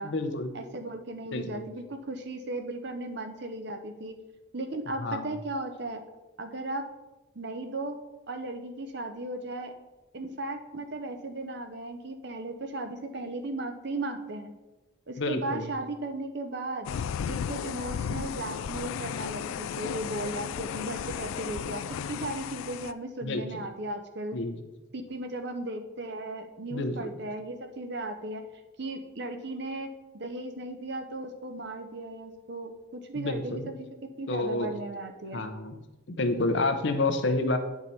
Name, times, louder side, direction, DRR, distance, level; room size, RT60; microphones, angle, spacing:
voice 1, 0.0-0.6 1.3-1.6 5.0-5.4 15.2-15.7 23.2-23.4 24.3-24.6 26.7-27.1 33.1-33.7 34.3-34.7 35.3-35.8 36.1-37.6, left 2 dB, 60° left, 8 dB, 0.8 m, -29 dB
voice 2, 0.5-4.1 4.5-6.0 6.4-6.9 7.3-8.0 8.3-9.7 10.1-14.5 15.1-16.9 17.3-24.4 24.9-28.4 28.8-35.5, right 2 dB, 55° right, 6 dB, 0.8 m, -36 dB
sound 1, 16.9-22.9, left 7 dB, 80° left, 0.3 m, -34 dB
9.3 x 4.8 x 4.2 m, 1.1 s
head